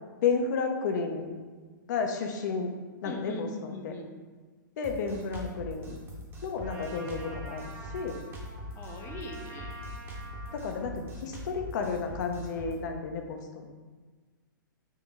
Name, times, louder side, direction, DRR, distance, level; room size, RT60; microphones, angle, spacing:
voice 1, 0.2-1.3 1.9-2.7 3.0-3.9 4.8-6.0 6.4-8.2 10.5-13.7, left 5 dB, 55° left, 4 dB, 0.7 m, -32 dB
voice 2, 3.0-4.1 8.8-9.8, left 2 dB, 25° left, 4 dB, 0.5 m, -41 dB
Drum kit, 4.8-12.8, equal, 20° right, 0.9 m, -42 dB
Trumpet, 6.6-10.9, right 2 dB, 55° right, 1.2 m, -47 dB
4.4 x 2.9 x 3.6 m, 1.4 s
hypercardioid pair, 125°, 11 cm